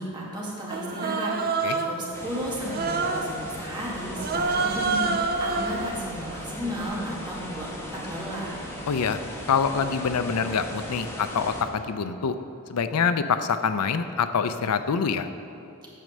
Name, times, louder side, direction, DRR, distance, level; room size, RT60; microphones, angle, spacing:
voice 1, 0.0-8.5, equal, 20° right, -6 dB, 2.1 m, -34 dB
Human voice, 0.7-2.0 2.7-3.4 4.2-5.9, right 4 dB, 45° right, 0.6 m, -27 dB
sound 1, 2.1-11.6, equal, 10° left, 1.1 m, -38 dB
voice 2, 8.9-9.2 9.5-12.4 12.7-15.3, left 6 dB, 90° left, 10 dB, 0.5 m, -25 dB
9.2 x 6.3 x 6.7 m, 2.8 s
head